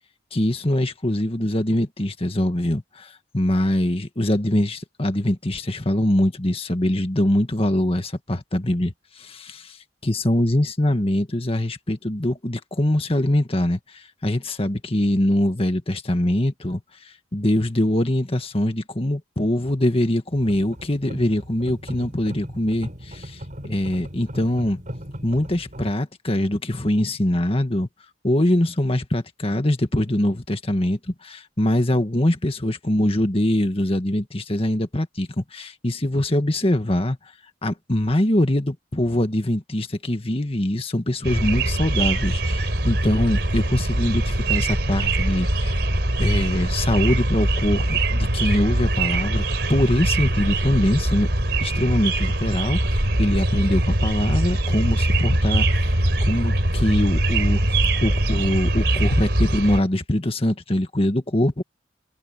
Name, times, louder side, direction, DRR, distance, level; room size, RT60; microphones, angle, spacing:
voice 1, 0.3-9.4 10.0-13.8 14.2-16.8 17.3-23.3 23.7-24.8 25.2-27.9 28.2-37.2 37.6-45.8 46.2-49.4 49.7-51.3 51.6-52.8 53.2-55.9 56.3-57.7 58.0-61.6, left 1 dB, 35° left, 1.7 m, -23 dB
sound 1, 20.3-25.9, equal, 45° right, 7.3 m, -38 dB
sound 2, 41.2-59.8, right 1 dB, 70° right, 4.5 m, -22 dB
head